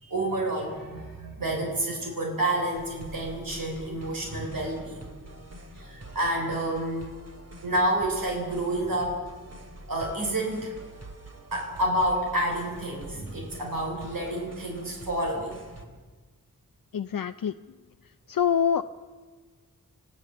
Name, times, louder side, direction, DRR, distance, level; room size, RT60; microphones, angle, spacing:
voice 1, 0.0-5.1 5.8-7.1 7.6-9.2 9.9-10.7 11.5-15.6, right 1 dB, 75° right, 0 dB, 4.1 m, -29 dB
sound 1, 2.7-15.8, right 1 dB, 50° right, 2.6 m, -46 dB
voice 2, 16.9-17.5 18.3-18.8, left 8 dB, 75° left, 8 dB, 0.6 m, -25 dB
28.0 x 16.0 x 7.0 m, 1.4 s
wide cardioid pair, 100°, 34 cm